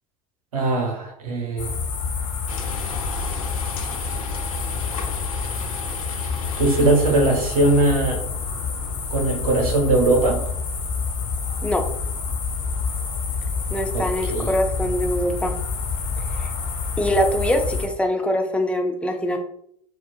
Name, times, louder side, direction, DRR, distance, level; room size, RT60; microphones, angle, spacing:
voice 1, 0.5-1.7 6.6-8.2 9.1-10.4 13.9-14.5, right 2 dB, 80° right, 0 dB, 0.8 m, -20 dB
sound 1, 1.6-17.9, left 5 dB, 50° left, 1.2 m, -28 dB
sound 2, 2.5-7.8, left 3 dB, 75° left, 0.6 m, -36 dB
voice 2, 13.7-15.5 16.3-16.5 17.0-19.4, equal, 5° left, 3 dB, 0.5 m, -23 dB
3.8 x 2.4 x 2.3 m, 0.68 s
hypercardioid pair, 80°, 18 cm